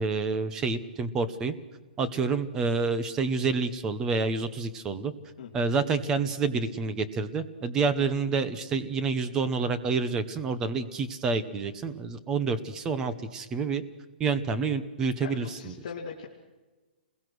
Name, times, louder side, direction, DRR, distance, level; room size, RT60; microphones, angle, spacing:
voice 1, 0.0-1.6 2.0-5.1 5.5-13.8 14.2-15.7, right 4 dB, 10° right, 12 dB, 0.9 m, -28 dB
voice 2, 5.4-5.7 8.0-8.1 15.2-16.3, left 6 dB, 40° left, -2 dB, 2.5 m, -40 dB
28.5 x 21.5 x 6.2 m, 1.3 s
hypercardioid pair, 180°, 6 cm